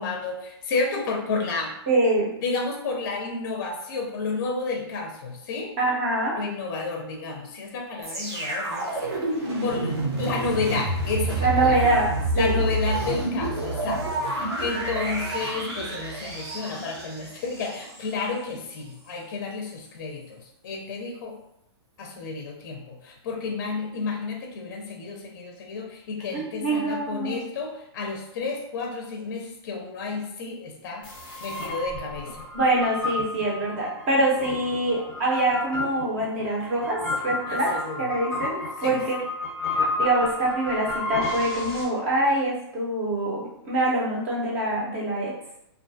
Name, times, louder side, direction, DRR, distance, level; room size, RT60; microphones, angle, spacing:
voice 1, 0.0-1.7 2.4-5.7 6.4-9.1 9.4-11.8 12.3-21.4 22.0-31.1 31.4-32.4 37.5-38.1 38.8-38.9, left 4 dB, 40° left, 1 dB, 0.4 m, -31 dB
voice 2, 1.9-2.3 5.8-6.4 11.4-12.1 12.4-12.6 26.3-27.4 32.5-37.0 37.2-37.7 38.0-39.2 39.7-45.3, right 2 dB, 30° right, -3 dB, 0.7 m, -24 dB
sound 1, 8.0-18.1 18.7-18.8, right 2 dB, 70° right, 0.9 m, -29 dB
sound 2, 31.0-41.8, left 2 dB, 5° left, 0.7 m, -31 dB
2.3 x 2.2 x 2.6 m, 0.79 s
hypercardioid pair, 165°, 14 cm